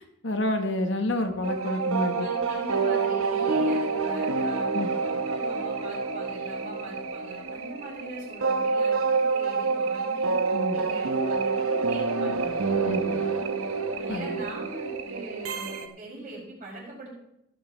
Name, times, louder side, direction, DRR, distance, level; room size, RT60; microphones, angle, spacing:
voice 1, 0.0-2.3 4.7-4.9 10.5-10.8 12.8-13.2 14.1-14.4, left 1 dB, 60° left, 6 dB, 1.1 m, -29 dB
sound 1, 1.4-15.9, right 4 dB, 90° right, 1.1 m, -27 dB
voice 2, 2.2-10.3 10.7-12.6 14.0-17.1, right 2 dB, 40° right, -4 dB, 5.5 m, -41 dB
17.5 x 9.2 x 3.2 m, 0.83 s
head